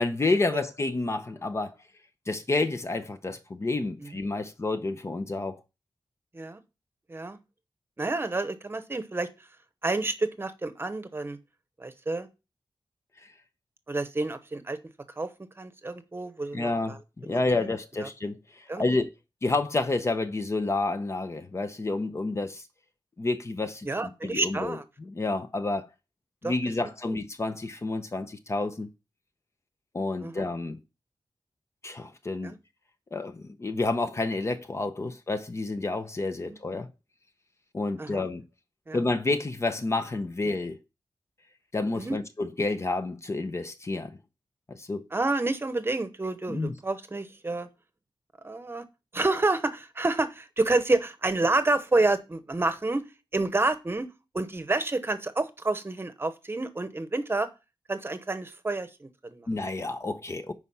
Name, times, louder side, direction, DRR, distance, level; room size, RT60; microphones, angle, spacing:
voice 1, 0.0-1.7 2.3-5.6 16.5-18.4 18.8-19.1 19.4-22.6 23.2-25.9 26.4-28.9 29.9-30.8 31.8-32.5 33.1-36.9 37.7-38.4 38.9-40.8 41.7-44.1 44.7-45.0 46.5-46.7 59.5-60.5, left 2 dB, 30° left, 0.8 m, -29 dB
voice 2, 8.0-9.3 9.8-11.4 11.8-12.3 13.9-14.8 15.2-15.3 15.6-17.0 17.2-17.7 18.0-18.1 18.7-18.8 23.8-24.8 26.4-26.5 30.2-30.5 32.4-32.6 35.0-35.1 38.0-38.2 38.9-39.0 41.9-42.2 45.1-47.7 48.4-48.8 49.1-53.0 53.3-54.1 54.3-57.5 57.9-59.5, right 2 dB, 25° right, 1.0 m, -29 dB
9.9 x 4.8 x 5.6 m
wide cardioid pair, 145°, 9 cm